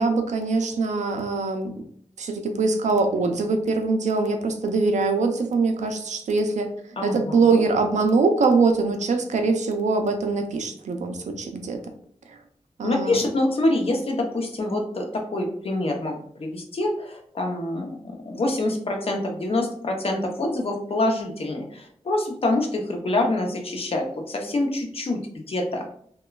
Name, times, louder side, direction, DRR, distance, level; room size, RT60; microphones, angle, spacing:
voice 1, 0.0-1.7 2.2-6.7 7.0-11.8 12.8-13.2, right 4 dB, 85° right, 5 dB, 0.4 m, -23 dB
voice 2, 7.0-7.6 12.8-25.8, left 2 dB, 55° left, 2 dB, 0.6 m, -26 dB
3.0 x 2.2 x 2.2 m, 0.62 s
wide cardioid pair, 100°, 12 cm